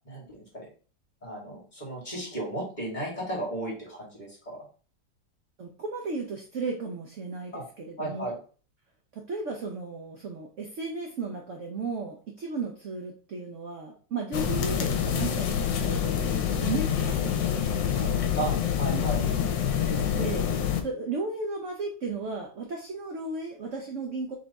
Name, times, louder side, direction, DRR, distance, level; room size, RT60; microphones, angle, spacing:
voice 1, 0.0-0.7 1.2-4.6 7.5-7.6 8.0-8.3 18.4-19.2, right 2 dB, 25° left, -4 dB, 2.0 m, -34 dB
voice 2, 5.6-8.2 9.1-18.4 18.6-19.0 20.1-24.4, right 3 dB, 65° right, 1 dB, 0.7 m, -35 dB
sound 1, 14.3-20.8, left 8 dB, 75° left, 1.4 m, -26 dB
3.7 x 3.4 x 4.0 m, 0.40 s
omnidirectional pair, 2.1 m